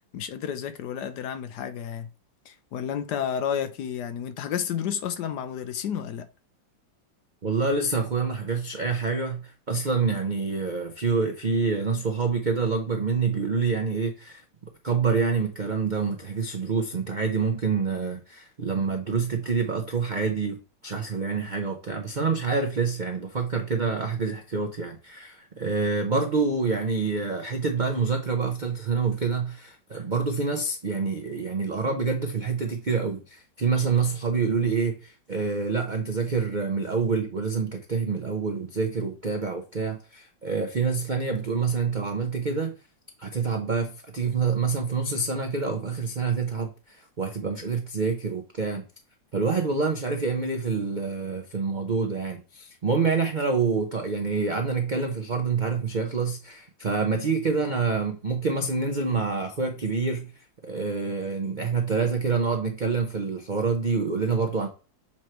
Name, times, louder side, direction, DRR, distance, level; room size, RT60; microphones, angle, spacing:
voice 1, 0.1-2.1 2.5-6.3, left 8 dB, 70° left, 1.1 m, -31 dB
voice 2, 7.4-14.4 14.8-42.7 43.2-48.8 49.3-60.3 60.6-64.7, right 4 dB, 85° right, 0.4 m, -27 dB
7.3 x 3.1 x 4.4 m
omnidirectional pair, 2.0 m